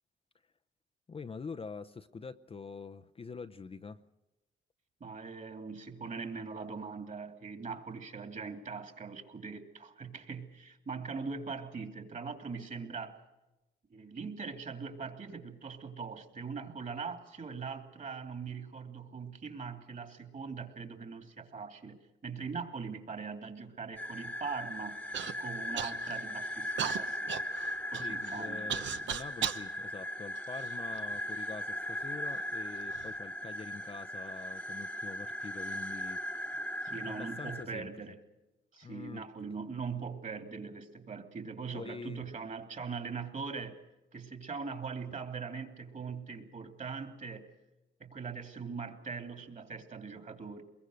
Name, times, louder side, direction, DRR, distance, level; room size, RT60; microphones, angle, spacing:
voice 1, 1.1-4.0 28.0-36.5 36.9-37.9 38.8-39.2 41.6-42.2, left 5 dB, 30° left, 9 dB, 0.7 m, -45 dB
voice 2, 5.0-13.2 13.9-27.3 27.9-29.0 36.8-38.2 38.7-43.8 44.1-47.5 48.0-50.6, right 5 dB, 40° right, 6 dB, 2.9 m, -41 dB
sound 1, 24.0-37.6, equal, 5° left, 1.3 m, -38 dB
Human voice / Cough, 25.1-25.3 25.8-26.3 26.8-29.7 30.4-31.2 31.9-32.0 32.7-33.1, right 9 dB, 70° right, 1.1 m, -37 dB
24.0 x 22.0 x 6.4 m, 1.0 s
cardioid pair, 90°, 20 cm